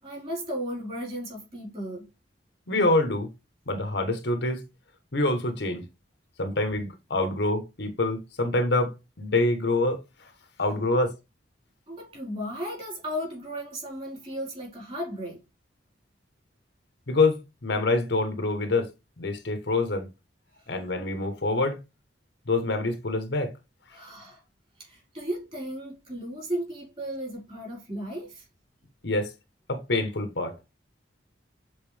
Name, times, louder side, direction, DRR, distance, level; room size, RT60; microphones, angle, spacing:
voice 1, 0.0-2.1 10.9-11.0 11.9-15.4 23.9-24.4 24.8-28.4, equal, 30° right, 4.1 m, -35 dB
voice 2, 2.7-3.3 3.7-4.6 5.1-5.8 6.4-10.3 10.6-11.1 17.1-18.9 19.2-20.1 20.7-21.8 22.5-23.5 29.0-29.3 29.7-30.5, left 2 dB, 65° left, 1.1 m, -26 dB
7.2 x 4.0 x 3.4 m
head